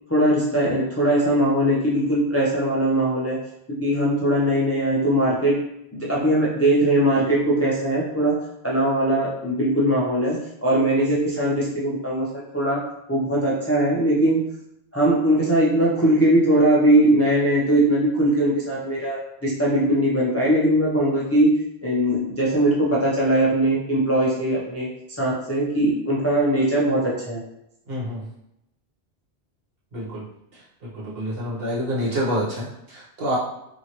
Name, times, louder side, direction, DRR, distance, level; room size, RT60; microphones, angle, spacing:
voice 1, 0.1-3.4 3.7-5.6 5.9-8.3 8.6-12.8 13.1-14.4 14.9-21.5 21.8-24.9 25.2-27.4, right 1 dB, 20° left, -6 dB, 0.3 m, -20 dB
voice 2, 27.9-28.2 29.9-30.2 30.8-33.4, equal, 60° right, -6 dB, 1.2 m, -27 dB
2.7 x 2.7 x 3.0 m, 0.81 s
omnidirectional pair, 1.1 m